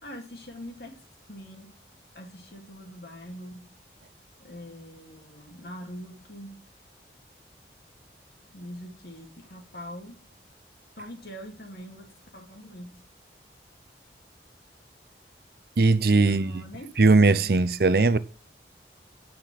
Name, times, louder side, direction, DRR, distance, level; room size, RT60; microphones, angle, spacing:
voice 1, 0.0-1.0 1.3-1.7 2.1-3.7 4.4-6.6 8.5-10.2 11.0-12.1 12.3-13.0 16.2-16.9, equal, 60° left, 2.6 m, -43 dB
voice 2, 15.8-16.6 17.0-18.2, right 3 dB, 55° right, 0.6 m, -19 dB
9.1 x 6.0 x 7.5 m
head